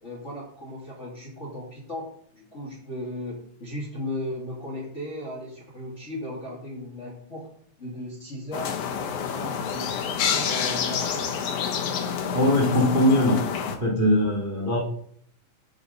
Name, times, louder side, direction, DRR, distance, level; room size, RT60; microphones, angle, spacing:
voice 1, 0.0-7.5 7.8-8.7 9.0-11.2 14.5-14.7, left 1 dB, 30° left, -4 dB, 1.5 m, -36 dB
sound 1, 8.5-13.8, left 7 dB, 70° left, 2.4 m, -28 dB
voice 2, 12.3-14.8, left 1 dB, 25° right, -2 dB, 1.2 m, -21 dB
8.0 x 6.9 x 5.2 m, 0.62 s
omnidirectional pair, 3.9 m